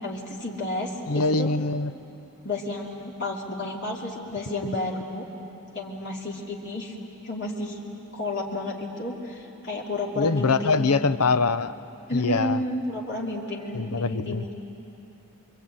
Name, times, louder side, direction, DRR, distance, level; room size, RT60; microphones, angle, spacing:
voice 1, 0.0-1.5 2.4-5.3 5.7-7.0 7.2-7.8 8.1-10.9 12.1-14.5, left 2 dB, 55° left, -4 dB, 2.9 m, -31 dB
voice 2, 1.1-1.9 10.2-11.7 12.1-12.6 13.7-14.4, left 4 dB, 80° left, 13 dB, 0.8 m, -23 dB
27.0 x 23.0 x 9.0 m, 2.9 s
head